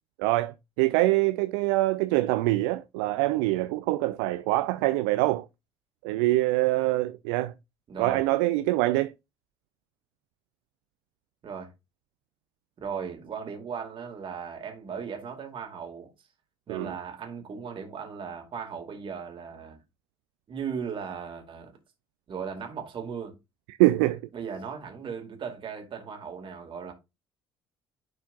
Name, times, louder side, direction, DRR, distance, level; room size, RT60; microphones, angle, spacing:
voice 1, 0.2-5.5 6.0-7.5 8.0-9.1 16.7-16.9 23.8-24.2, right 18 dB, 60° right, 0.4 m, -24 dB
voice 2, 7.9-8.2 11.4-11.7 12.8-16.1 16.7-19.8 20.5-21.8 22.3-23.4 24.3-26.9, right 6 dB, 40° right, 2.2 m, -37 dB
10.5 x 4.4 x 2.5 m
figure-of-eight pair, 50°, 13 cm